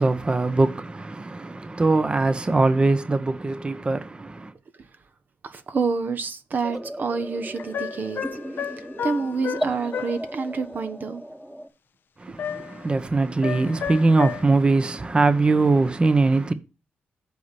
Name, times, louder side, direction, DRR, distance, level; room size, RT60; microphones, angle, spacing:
voice 1, 0.0-4.0 12.8-16.5, right 3 dB, 25° right, 0.9 m, -21 dB
voice 2, 5.4-8.2 8.5-11.2 12.6-12.7, right 4 dB, 50° right, 1.0 m, -28 dB
sound 1, 6.6-11.7, equal, 10° right, 1.3 m, -35 dB
sound 2, 7.5-10.2 12.4-12.9 13.4-14.4, left 8 dB, 65° left, 0.5 m, -32 dB
8.3 x 4.1 x 7.0 m
cardioid pair, 80°, 4 cm